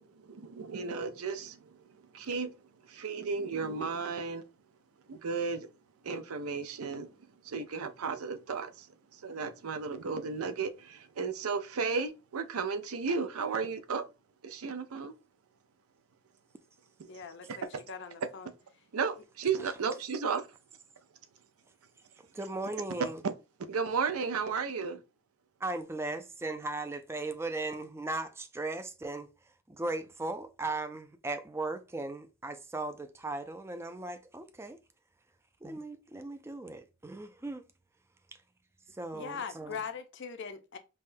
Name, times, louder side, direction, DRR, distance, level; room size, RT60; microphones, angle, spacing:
voice 1, 0.0-1.8 2.1-2.5 2.8-4.4 5.1-5.7 6.0-7.1 7.4-8.9 9.1-14.0 14.4-15.1 17.0-17.1 17.5-17.6 18.9-20.4 23.7-25.0, right 5 dB, 85° right, 0.5 m, -34 dB
voice 2, 17.1-18.5 39.1-40.8, left 6 dB, 55° left, 0.5 m, -41 dB
voice 3, 22.3-23.2 25.6-34.8 35.6-37.6 38.3-38.4 38.9-39.8, right 2 dB, 10° right, 0.3 m, -37 dB
5.4 x 2.2 x 2.6 m
head